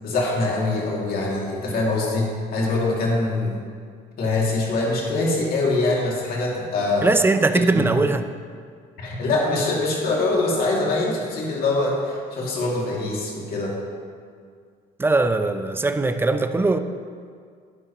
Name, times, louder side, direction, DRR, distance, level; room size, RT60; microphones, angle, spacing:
voice 1, 0.0-3.6 4.2-7.1 7.7-7.8 9.0-13.7, left 2 dB, 65° left, -3 dB, 2.5 m, -23 dB
voice 2, 7.0-8.3 15.0-16.8, right 3 dB, 15° right, 9 dB, 0.5 m, -20 dB
11.0 x 9.7 x 3.0 m, 2.1 s
cardioid pair, 110°, 17 cm